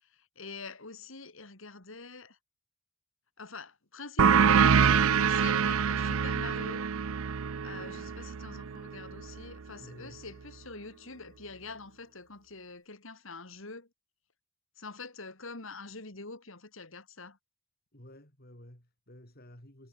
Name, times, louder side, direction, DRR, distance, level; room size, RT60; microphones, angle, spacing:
voice 1, 0.4-2.4 3.4-6.9 7.6-13.9 14.8-17.4, left 3 dB, 65° left, 2.8 m, -45 dB
sound 1, 4.2-9.4, right 6 dB, 75° right, 0.6 m, -25 dB
voice 2, 7.7-8.2 9.7-10.2 17.9-19.9, left 1 dB, 45° left, 5.3 m, -53 dB
head